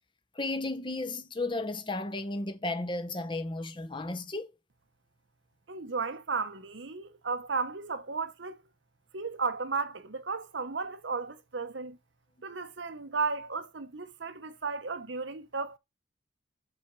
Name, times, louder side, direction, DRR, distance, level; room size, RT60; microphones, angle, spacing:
voice 1, 0.3-4.5, left 2 dB, 25° left, 0.7 m, -34 dB
voice 2, 5.7-8.6 9.1-12.0 12.4-15.8, right 4 dB, 75° right, 0.9 m, -34 dB
6.3 x 4.4 x 4.6 m
head